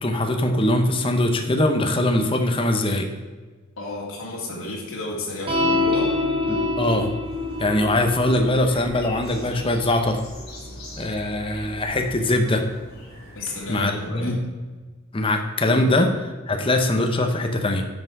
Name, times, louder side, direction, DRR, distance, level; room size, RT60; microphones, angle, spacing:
voice 1, 0.0-3.1 6.5-7.1 7.6-10.2 11.0-12.6 13.7-14.4 15.1-16.1 16.5-17.8, left 1 dB, 25° left, 4 dB, 0.8 m, -22 dB
voice 2, 3.8-6.2 13.3-14.4 15.7-15.9, left 2 dB, 85° left, -4 dB, 2.2 m, -32 dB
sound 1, 5.5-12.1, left 2 dB, 25° right, 1.3 m, -28 dB
sound 2, 7.2-14.1, left 1 dB, 50° left, 3.2 m, -43 dB
10.5 x 5.8 x 4.7 m, 1.3 s
head